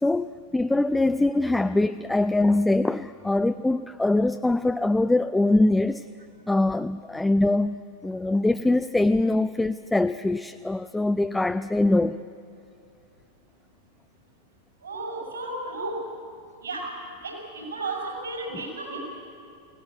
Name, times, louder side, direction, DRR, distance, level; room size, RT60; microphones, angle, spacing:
voice 1, 0.0-6.1 6.5-12.2, left 2 dB, 5° left, 11 dB, 0.4 m, -23 dB
voice 2, 14.8-16.0 16.6-16.9 17.2-19.0, right 2 dB, 70° right, 0 dB, 6.0 m, -33 dB
22.0 x 17.5 x 8.2 m, 2.5 s
figure-of-eight pair, 90°, 0 cm